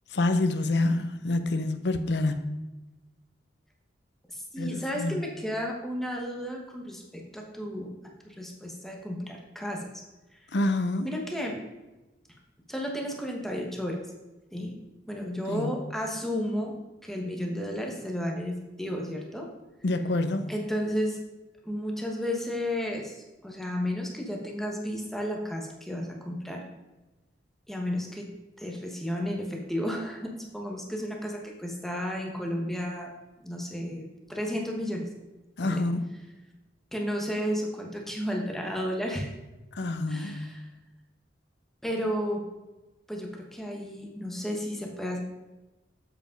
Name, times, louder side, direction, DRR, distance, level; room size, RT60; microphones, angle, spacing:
voice 1, 0.1-2.4 4.6-5.2 10.5-11.1 15.5-15.7 19.8-20.5 35.6-36.0 39.7-40.6, left 2 dB, 65° left, 9 dB, 0.6 m, -27 dB
voice 2, 4.3-7.9 8.2-9.9 10.3-10.5 11.0-11.6 12.7-14.0 14.5-14.7 15.0-19.5 20.5-21.2 21.6-26.6 27.7-28.3 28.6-33.1 33.4-35.1 35.6-35.8 36.9-39.3 40.1-40.7 41.8-42.4 43.1-45.2, equal, ahead, 0 dB, 1.0 m, -33 dB
7.8 x 5.1 x 5.1 m, 1.1 s
head